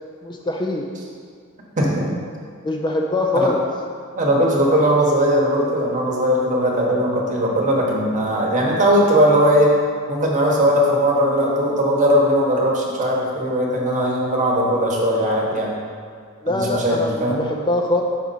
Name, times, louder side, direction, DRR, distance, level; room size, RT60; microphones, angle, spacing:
voice 1, 0.2-0.9 2.6-3.6 16.4-18.0, left 2 dB, 20° left, 2 dB, 0.3 m, -23 dB
voice 2, 1.8-2.1 3.3-3.5 4.1-9.7 10.1-15.7 16.5-17.4, equal, 35° right, -2 dB, 1.1 m, -19 dB
5.9 x 4.9 x 4.1 m, 2.1 s
head